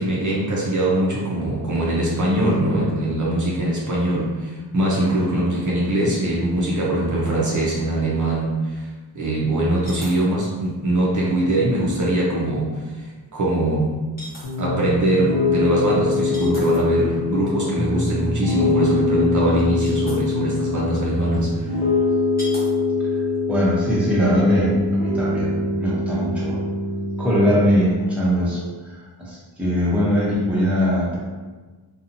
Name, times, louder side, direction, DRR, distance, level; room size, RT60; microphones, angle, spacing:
voice 1, 0.0-8.9 9.1-13.0 13.3-14.0 14.6-21.8, right 1 dB, 45° right, -5 dB, 0.6 m, -22 dB
sound 1, 6.4-6.5 6.8-6.9 9.8-10.2 10.7-10.8 12.5-12.7 14.2-14.6 16.2-16.9 19.2-19.3 19.6-20.2 21.3-21.4 22.4-22.7 23.1-23.4, left 1 dB, 20° left, 0.9 m, -39 dB
Piano, 14.4-27.5, left 3 dB, 80° left, 0.8 m, -23 dB
voice 2, 23.0-26.6 27.2-31.2, equal, 5° right, -7 dB, 0.7 m, -21 dB
2.7 x 2.3 x 2.5 m, 1.3 s
wide cardioid pair, 115°, 43 cm